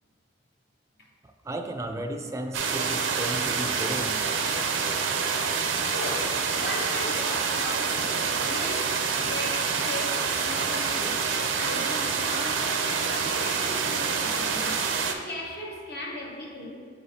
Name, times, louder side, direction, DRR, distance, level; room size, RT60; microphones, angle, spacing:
voice 1, 1.5-4.2, right 1 dB, 15° right, 5 dB, 0.3 m, -34 dB
sound 1, 2.5-15.1, right 5 dB, 85° right, 0.5 m, -27 dB
voice 2, 5.9-11.2 11.6-14.8 15.1-16.9, left 1 dB, 60° left, -1 dB, 0.8 m, -38 dB
7.4 x 4.9 x 2.7 m, 2.1 s
head